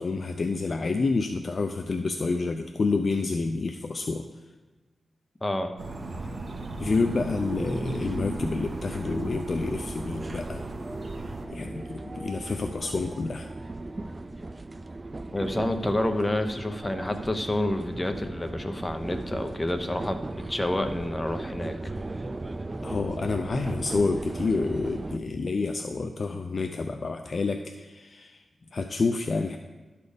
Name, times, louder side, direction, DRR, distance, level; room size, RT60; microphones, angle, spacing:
voice 1, 0.0-4.3 6.8-10.6 11.2-13.5 22.8-28.4 28.7-29.6, left 3 dB, 50° left, 5 dB, 0.4 m, -28 dB
voice 2, 5.4-5.7 15.3-20.2 20.5-21.8, left 1 dB, 15° left, 7 dB, 0.7 m, -28 dB
sound 1, 5.8-11.5, right 2 dB, 45° right, 0.9 m, -37 dB
sound 2, 6.0-25.2, right 2 dB, 25° right, 0.3 m, -37 dB
12.0 x 4.2 x 5.1 m, 1.3 s
wide cardioid pair, 105°, 0 cm